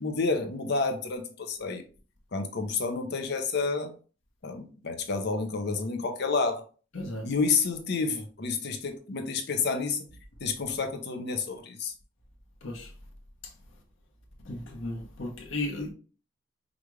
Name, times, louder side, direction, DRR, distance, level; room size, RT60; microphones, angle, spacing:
voice 1, 0.0-1.8 2.3-3.9 4.4-6.6 7.2-10.0 10.4-11.9, left 4 dB, 60° left, 0.7 m, -29 dB
voice 2, 6.9-7.3 12.6-12.9 14.4-15.9, left 2 dB, 85° left, 1.1 m, -35 dB
5.0 x 2.5 x 3.2 m
head